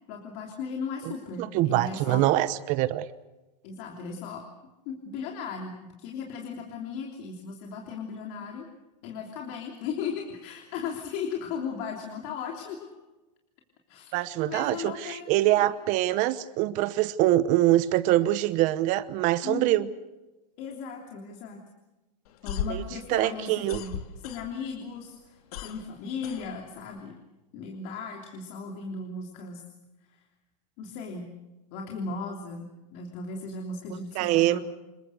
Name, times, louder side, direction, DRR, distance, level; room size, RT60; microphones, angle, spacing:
voice 1, 0.1-2.3 3.6-4.4 4.8-8.7 9.0-12.9 13.9-14.1 14.4-15.7 19.4-19.8 20.6-21.6 22.4-27.2 27.5-29.6 30.1-30.2 30.8-31.3 31.7-34.6, left 5 dB, 45° left, 1 dB, 3.2 m, -37 dB
voice 2, 1.4-3.1 14.1-19.9 22.7-22.8 23.1-23.8 34.2-34.6, right 15 dB, 35° right, 15 dB, 0.9 m, -24 dB
sound 1, 22.2-24.8 25.1-27.0, left 8 dB, 60° left, 2.3 m, -36 dB
27.0 x 22.5 x 6.5 m, 1.1 s
supercardioid pair, 145°, 21 cm